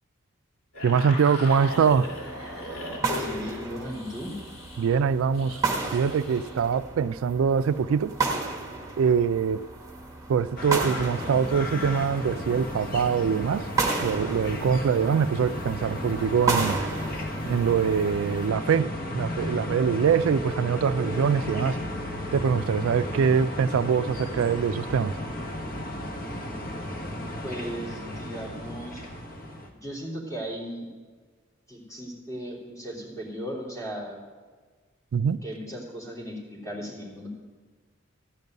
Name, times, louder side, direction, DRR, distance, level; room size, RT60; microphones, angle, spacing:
sound 1, 0.7-6.5, left 1 dB, 85° left, 3.1 m, -38 dB
voice 1, 0.8-2.1 4.8-5.6 5.9-8.2 9.0-9.7 10.3-13.7 14.0-16.8 17.5-21.8 22.3-25.1 35.1-35.4, right 6 dB, 75° right, 14 dB, 0.3 m, -24 dB
sound 2, 1.4-18.5, right 4 dB, 15° right, 1.2 m, -33 dB
voice 2, 2.9-4.3 27.4-29.0 29.7-30.9 31.7-34.2 35.4-37.3, equal, 15° left, -5 dB, 3.2 m, -37 dB
sound 3, 10.6-29.7, left 1 dB, 45° left, 1.2 m, -34 dB
14.0 x 5.4 x 9.3 m, 1.4 s
head